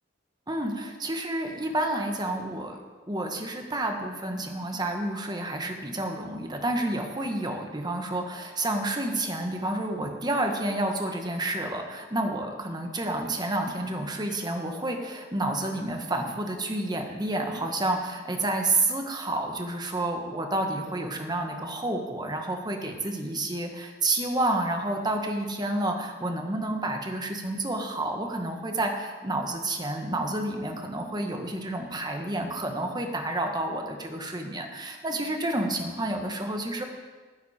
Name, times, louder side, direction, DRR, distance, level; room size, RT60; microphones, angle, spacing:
voice 1, 0.5-2.8 3.1-36.8, right 2 dB, 25° right, 3 dB, 1.5 m, -30 dB
14.5 x 9.8 x 4.4 m, 1.4 s
head